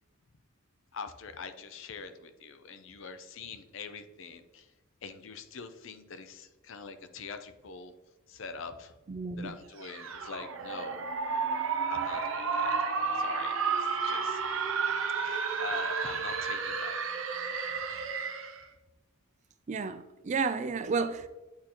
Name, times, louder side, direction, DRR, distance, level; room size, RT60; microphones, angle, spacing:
voice 1, 0.9-4.7 5.0-8.0 8.3-8.9 9.4-11.1 11.9-14.4 15.1-17.0 17.5-17.6, left 5 dB, 65° left, 0.5 m, -44 dB
voice 2, 9.1-9.5 19.7-21.3, right 4 dB, 35° right, 0.3 m, -32 dB
sound 1, 9.8-18.6, right 5 dB, 65° right, 0.7 m, -32 dB
8.7 x 4.2 x 2.9 m
head